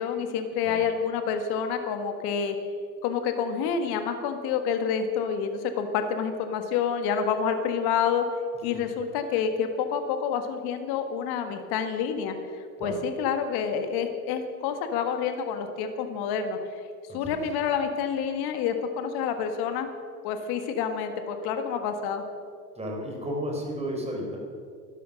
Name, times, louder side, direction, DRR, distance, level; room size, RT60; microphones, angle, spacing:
voice 1, 0.0-2.6 3.0-8.2 8.6-16.6 17.1-19.9 20.2-22.2, left 7 dB, 50° left, 7 dB, 1.7 m, -28 dB
voice 2, 22.7-24.4, equal, 15° right, -1 dB, 4.2 m, -32 dB
12.0 x 12.0 x 6.3 m, 2.2 s
hypercardioid pair, 100°, 47 cm